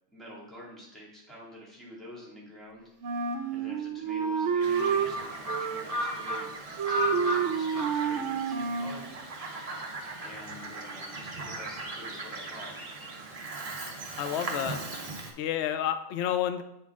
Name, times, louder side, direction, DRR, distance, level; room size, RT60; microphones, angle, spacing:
voice 1, 0.1-2.9 3.5-6.5 6.9-9.4 10.2-12.8, equal, ahead, -6 dB, 2.0 m, -47 dB
Wind instrument woodwind instrument, 3.0-5.1 5.5-6.5 6.8-9.0, right 6 dB, 65° right, 0.9 m, -29 dB
Bird vocalization bird call bird song, 4.6-15.3, right 1 dB, 35° right, 0.8 m, -36 dB
voice 2, 14.2-14.8 15.4-16.6, left 10 dB, 65° left, 9 dB, 0.7 m, -30 dB
8.2 x 3.9 x 3.6 m, 0.83 s
omnidirectional pair, 1.4 m